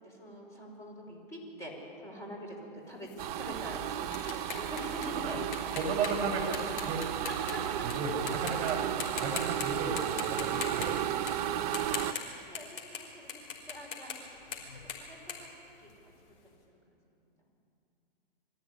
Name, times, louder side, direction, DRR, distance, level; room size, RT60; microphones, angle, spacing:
voice 1, 0.0-1.7 2.0-3.1 3.3-5.5 7.2-8.2 11.3-14.5 15.0-15.5 15.8-15.9, equal, 10° left, -2 dB, 5.1 m, -45 dB
sound 1, 3.1-7.9 8.3-8.7 9.0-9.7 10.0-13.0 13.3-16.3, left 6 dB, 65° left, 5.2 m, -41 dB
sound 2, 3.2-12.1, right 11 dB, 45° right, 0.8 m, -34 dB
voice 2, 5.8-7.1 7.8-10.9, right 4 dB, 25° right, 1 dB, 5.9 m, -34 dB
23.5 x 15.0 x 9.8 m, 2.8 s
hypercardioid pair, 145°, 29 cm